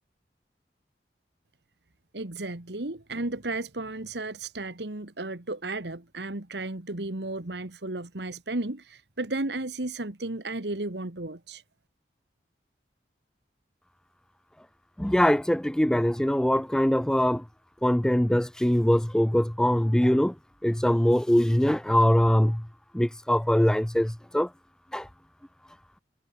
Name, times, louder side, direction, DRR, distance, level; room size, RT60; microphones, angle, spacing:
voice 1, 2.1-11.6, right 2 dB, 75° right, 1.8 m, -34 dB
voice 2, 15.0-17.4 17.8-20.3 20.6-22.6 22.9-24.5 24.9-25.0, equal, 5° left, 0.3 m, -22 dB
head